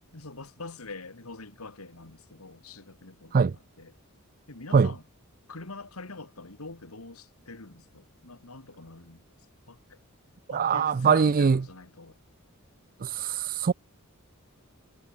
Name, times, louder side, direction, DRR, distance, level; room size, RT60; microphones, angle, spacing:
voice 1, 0.1-3.9 4.5-5.0 5.5-9.2 9.7-10.0 10.5-12.2, left 3 dB, 80° left, 2.4 m, -44 dB
voice 2, 10.5-11.6 13.0-13.7, right 6 dB, 40° right, 0.4 m, -22 dB
head